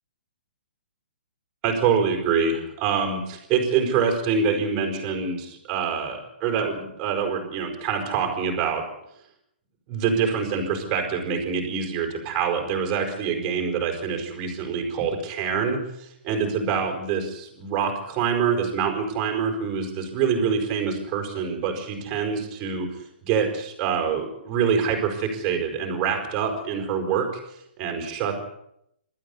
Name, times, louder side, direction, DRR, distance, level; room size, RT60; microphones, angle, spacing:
voice 1, 1.6-8.8 9.9-22.9 23.2-27.3 27.8-28.4, right 6 dB, 15° right, 3 dB, 5.3 m, -25 dB
25.5 x 13.5 x 9.9 m, 0.76 s
hypercardioid pair, 170°, 6 cm